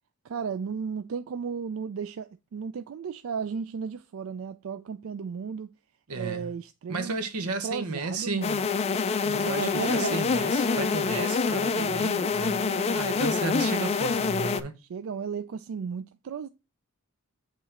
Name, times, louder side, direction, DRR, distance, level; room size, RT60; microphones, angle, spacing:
voice 1, 0.2-5.7 6.1-7.3 7.6-8.7 9.2-10.9 11.7-13.0 14.8-16.5, right 6 dB, 65° right, 0.3 m, -35 dB
voice 2, 6.1-6.5 6.9-8.5 9.3-12.6 12.9-14.7, right 3 dB, 90° right, 0.9 m, -33 dB
sound 1, 8.4-14.6, left 5 dB, 30° left, 0.3 m, -26 dB
7.9 x 3.1 x 4.2 m
head